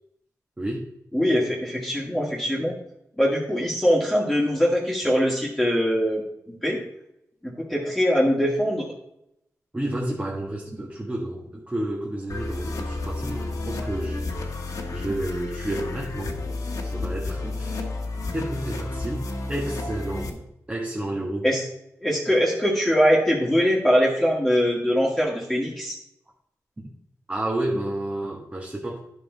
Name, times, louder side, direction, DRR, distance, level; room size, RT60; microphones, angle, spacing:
voice 1, 0.6-0.9 9.7-14.2 14.9-16.4 16.8-17.9 18.3-20.4 20.7-21.5 26.8-26.9 27.3-29.0, right 1 dB, 20° right, -4 dB, 1.6 m, -30 dB
voice 2, 1.1-2.8 3.2-6.2 6.6-6.8 7.4-8.9 21.4-21.6 22.0-26.0, equal, 5° left, -5 dB, 2.0 m, -22 dB
sound 1, 12.3-20.3, left 2 dB, 70° left, 1.3 m, -31 dB
10.5 x 5.5 x 4.0 m, 0.80 s
cardioid pair, 65°, 6 cm